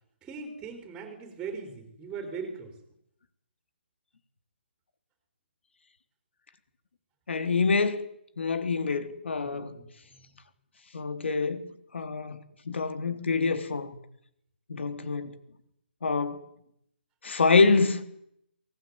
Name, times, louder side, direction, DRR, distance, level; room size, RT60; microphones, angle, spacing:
voice 1, 0.2-2.7 9.3-9.9 14.7-15.0, right 5 dB, 10° right, 4.1 m, -40 dB
voice 2, 7.3-8.1 8.4-9.8 10.9-14.0 14.7-15.3 16.0-16.4 17.2-18.0, left 4 dB, 70° left, 3.5 m, -26 dB
24.0 x 19.0 x 9.6 m
hypercardioid pair, 160°, 6 cm